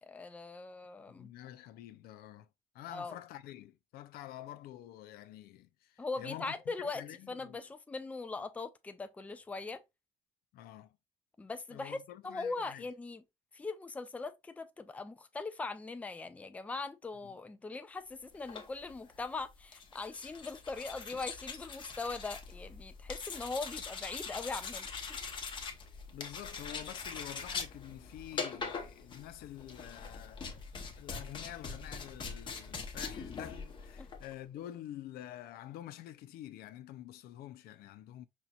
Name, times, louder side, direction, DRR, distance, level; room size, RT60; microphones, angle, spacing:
voice 1, 0.0-1.3 2.9-3.2 6.0-9.8 11.4-12.0 12.2-13.2 13.5-24.9 34.0-34.1, left 3 dB, 10° left, 0.4 m, -40 dB
voice 2, 1.0-2.5 2.7-7.7 10.5-11.0 11.7-12.9 17.2-17.4 26.1-38.3, left 12 dB, 90° left, 0.5 m, -48 dB
sound 1, 18.3-34.3, left 5 dB, 30° left, 0.8 m, -43 dB
5.4 x 2.9 x 2.3 m
cardioid pair, 155°, 16 cm